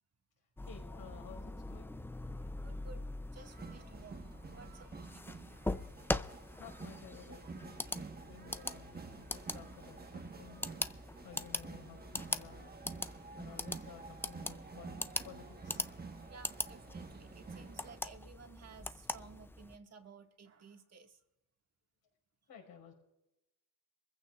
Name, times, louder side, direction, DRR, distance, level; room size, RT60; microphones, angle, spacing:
voice 1, 0.6-2.0 6.6-10.6 11.2-12.9 13.3-15.9 22.5-22.9, left 7 dB, 60° left, 1 dB, 5.3 m, -54 dB
sound 1, 0.6-19.8, left 2 dB, 5° left, 0.4 m, -42 dB
voice 2, 2.6-3.1 3.3-5.4 7.6-8.5 13.0-13.6 16.3-21.2, right 5 dB, 40° right, 4 dB, 1.8 m, -56 dB
sound 2, 3.3-18.0, right 4 dB, 25° right, 1.3 m, -50 dB
23.5 x 15.0 x 2.4 m, 0.95 s
cardioid pair, 95°, 41 cm